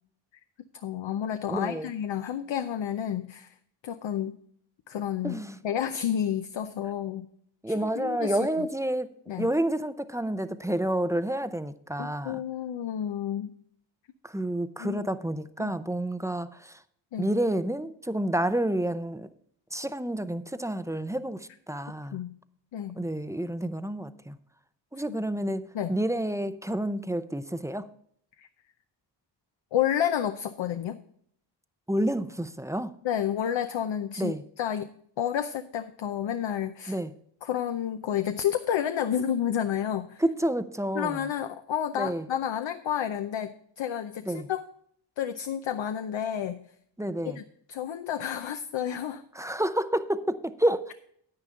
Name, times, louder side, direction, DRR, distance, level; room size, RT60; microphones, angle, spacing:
voice 1, 0.7-3.5 3.8-4.3 4.9-7.3 7.7-8.7 9.3-9.5 12.0-13.5 14.8-15.0 15.6-15.7 17.1-17.3 22.1-22.4 22.7-23.0 25.7-26.0 28.4-28.5 29.7-31.0 33.0-34.9 35.2-37.0 37.4-40.2 40.9-44.7 45.2-46.6 47.2-47.4 47.7-49.2, left 9 dB, 75° left, 0.7 m, -30 dB
voice 2, 1.5-1.9 5.2-5.6 7.6-9.1 9.4-12.4 14.2-16.8 17.2-19.3 19.7-22.2 23.0-24.4 24.9-27.9 31.9-32.9 34.2-34.4 36.9-37.1 40.2-41.3 42.0-42.3 44.2-44.5 47.0-47.4 49.3-50.9, right 1 dB, 5° right, 0.5 m, -29 dB
10.0 x 9.8 x 3.7 m
wide cardioid pair, 110°, 46 cm